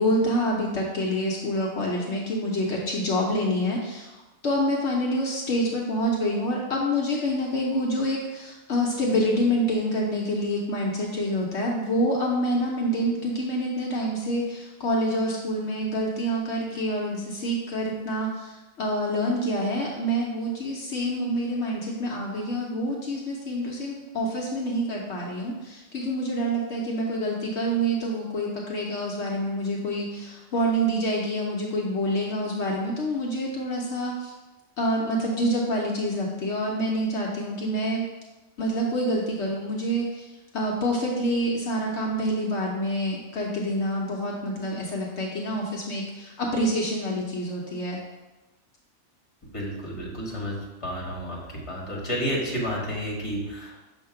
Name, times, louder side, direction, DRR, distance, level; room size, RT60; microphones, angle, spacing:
voice 1, 0.0-4.1 4.4-34.3 34.8-38.0 38.6-40.3 40.5-48.0, equal, 70° left, -2 dB, 1.1 m, -27 dB
voice 2, 49.5-51.4 51.7-53.8, equal, 25° left, -4 dB, 1.6 m, -31 dB
6.4 x 2.8 x 5.6 m, 1.1 s
omnidirectional pair, 1.2 m